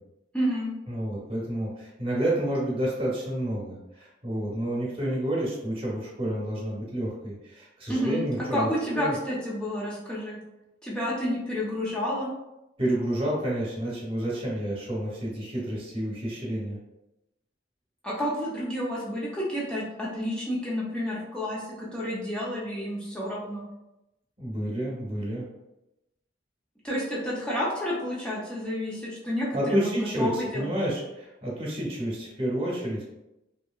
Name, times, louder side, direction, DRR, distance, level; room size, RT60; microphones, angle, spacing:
voice 1, 0.3-0.7 7.9-8.2 8.5-10.4 10.8-12.3 18.0-23.6 26.8-30.7, equal, 5° left, -6 dB, 0.5 m, -30 dB
voice 2, 0.9-8.7 8.9-9.1 12.8-16.8 24.4-25.5 29.5-33.1, right 1 dB, 30° right, -5 dB, 0.9 m, -29 dB
2.8 x 2.7 x 2.3 m, 0.92 s
head